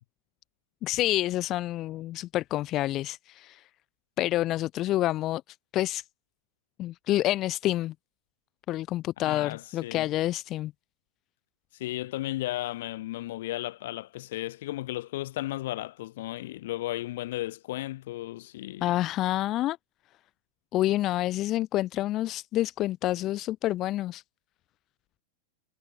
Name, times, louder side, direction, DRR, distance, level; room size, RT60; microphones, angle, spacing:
voice 1, 0.8-3.6 4.2-5.4 5.7-6.0 6.8-7.9 8.7-10.7 18.8-19.8 20.7-24.2, left 15 dB, 40° left, 0.7 m, -28 dB
voice 2, 9.2-10.1 11.8-18.9, left 16 dB, 65° left, 2.3 m, -34 dB
hypercardioid pair, 110°, 0 cm